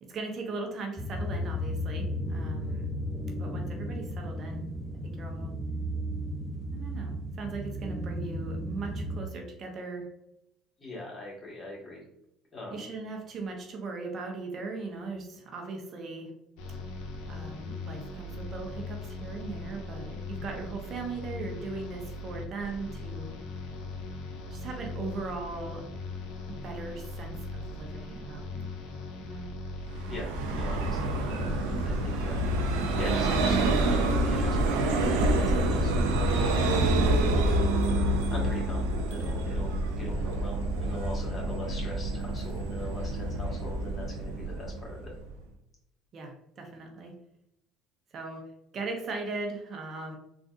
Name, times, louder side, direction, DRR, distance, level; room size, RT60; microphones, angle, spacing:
voice 1, 0.1-2.9 3.4-4.7 5.0-5.5 6.7-10.1 12.7-16.3 17.3-23.3 24.5-25.8 26.6-28.7 29.2-29.5 41.3-41.4 46.1-47.1 48.1-48.4 48.7-50.2, right 3 dB, 45° right, 2 dB, 0.7 m, -38 dB
sound 1, 1.0-9.2, equal, 10° right, 0.5 m, -34 dB
voice 2, 10.8-12.0 12.5-12.9 30.1-45.1, left 1 dB, 30° left, -3 dB, 1.4 m, -42 dB
sound 2, 16.6-35.1, left 2 dB, 75° left, 0.5 m, -39 dB
Vehicle, 29.9-45.4, right 1 dB, 85° right, 0.5 m, -27 dB
3.7 x 2.4 x 2.4 m, 0.81 s
supercardioid pair, 85°, 0 cm